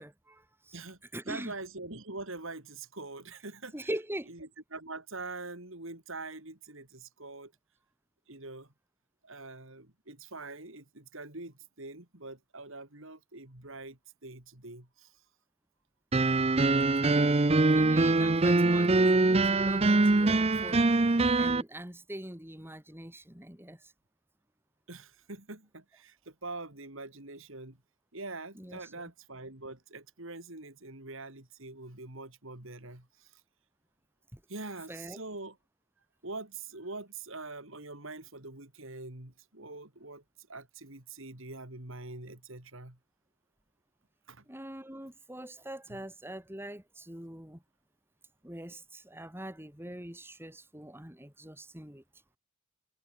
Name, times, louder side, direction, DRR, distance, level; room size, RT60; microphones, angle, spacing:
voice 1, 0.0-0.8 1.1-1.5 3.7-4.3 16.8-17.3 17.7-23.9 28.5-28.9 34.3-34.4 34.9-35.2 44.5-47.6 48.4-52.0, right 1 dB, 10° right, 3.0 m, -43 dB
voice 2, 1.3-3.7 4.3-7.5 8.3-8.7 9.2-15.1 24.9-27.8 28.1-33.3 34.5-35.6 36.2-40.2 40.5-43.0 44.3-44.4 45.9-46.0, right 2 dB, 60° right, 3.5 m, -44 dB
sound 1, 16.1-21.6, right 2 dB, 25° right, 0.6 m, -23 dB
head